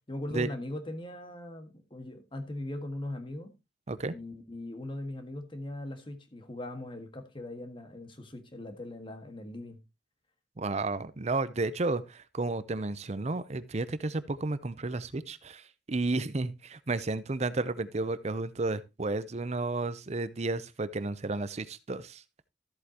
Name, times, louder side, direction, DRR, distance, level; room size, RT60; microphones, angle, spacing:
voice 1, 0.1-3.5 4.1-9.8, left 1 dB, 30° left, 1.7 m, -40 dB
voice 2, 10.6-22.2, right 3 dB, 35° right, 0.6 m, -32 dB
13.5 x 8.1 x 2.9 m
head